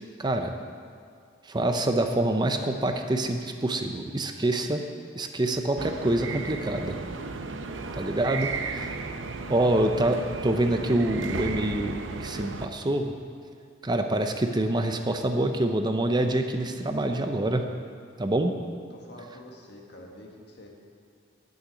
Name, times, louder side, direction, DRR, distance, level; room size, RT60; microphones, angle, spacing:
voice 1, 0.2-0.5 1.4-4.8 5.2-7.0 7.9-8.9 9.5-13.1 13.8-17.7 18.2-18.5, right 1 dB, 20° right, 5 dB, 0.6 m, -26 dB
sound 1, 5.8-12.7, right 4 dB, 80° right, 0.7 m, -35 dB
voice 2, 8.4-8.9 18.9-20.7, left 1 dB, 60° left, 0 dB, 1.8 m, -47 dB
11.0 x 6.4 x 8.3 m, 2.3 s
head